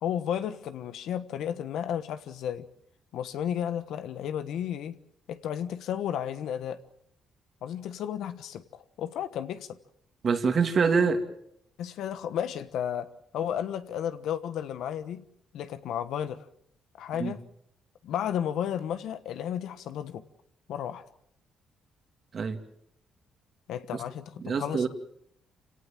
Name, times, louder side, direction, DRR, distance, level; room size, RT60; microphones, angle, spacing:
voice 1, 0.0-2.7 3.1-5.0 5.3-6.8 7.6-9.8 11.8-13.1 13.3-15.2 15.5-16.4 17.0-17.4 18.0-20.2 20.7-21.0 23.7-24.9, left 9 dB, 80° left, 11 dB, 1.3 m, -33 dB
voice 2, 10.2-11.2 17.2-17.3 22.3-22.6 24.4-24.9, right 5 dB, 50° right, 6 dB, 2.6 m, -25 dB
27.5 x 17.5 x 7.6 m, 0.76 s
cardioid pair, 90°, 0 cm